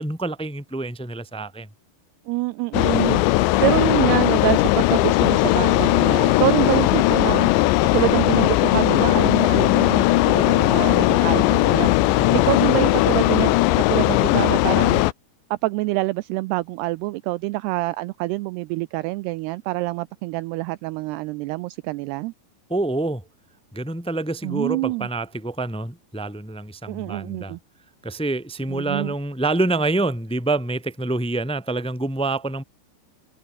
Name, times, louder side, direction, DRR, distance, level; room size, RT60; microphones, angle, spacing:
voice 1, 0.0-1.7 12.1-12.5 22.7-23.2 23.7-27.6 28.0-32.6, right 2 dB, ahead, 1.6 m, -26 dB
voice 2, 2.3-3.2 3.6-7.5 7.9-11.9 12.3-15.0 15.5-22.3 24.4-25.1 26.9-27.6 28.7-29.1, right 20 dB, 85° right, 2.4 m, -26 dB
sound 1, 2.7-15.1, left 18 dB, 80° left, 3.1 m, -18 dB
omnidirectional pair, 5.1 m